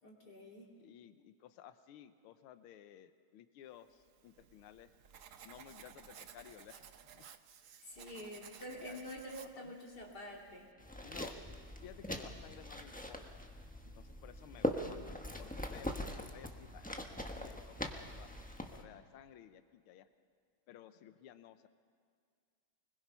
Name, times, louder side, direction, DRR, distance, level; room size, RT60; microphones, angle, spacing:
voice 1, 0.0-0.7 7.8-10.7, equal, 50° left, -2 dB, 3.3 m, -47 dB
voice 2, 0.8-4.9 5.4-7.2 8.8-9.0 9.5-9.7 11.0-11.4 11.8-13.4 14.0-18.3 18.7-20.1 20.7-21.7, left 11 dB, 85° left, 11 dB, 1.7 m, -56 dB
Writing, 4.0-10.7, right 8 dB, 65° right, 0.8 m, -57 dB
sound 1, 10.8-18.8, left 1 dB, 5° left, 0.7 m, -42 dB
25.0 x 21.0 x 5.6 m, 2.2 s
omnidirectional pair, 2.3 m